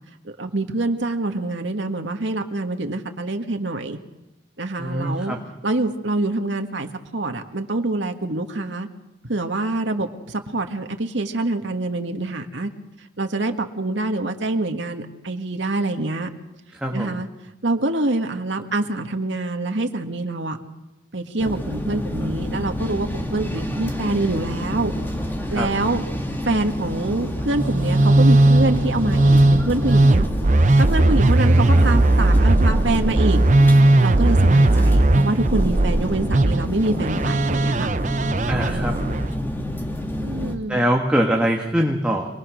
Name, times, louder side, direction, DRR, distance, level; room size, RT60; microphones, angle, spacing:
voice 1, 0.2-4.0 4.6-5.4 5.6-8.9 9.3-12.7 13.2-16.3 16.9-17.3 17.6-20.6 21.1-24.9 25.5-26.0 26.4-30.2 30.8-33.4 34.0-37.9 40.2-40.9, right 2 dB, 85° right, 5 dB, 1.8 m, -25 dB
voice 2, 4.8-5.4 16.7-17.2 23.5-23.8 25.5-25.7 31.3-32.0 34.2-34.9 38.5-38.9 40.7-42.3, equal, 5° right, 0 dB, 1.8 m, -24 dB
sound 1, 21.4-40.5, left 1 dB, 10° left, 2.0 m, -28 dB
Musical instrument, 27.5-39.3, right 2 dB, 40° right, 0.7 m, -17 dB
27.0 x 20.0 x 6.5 m, 0.96 s
head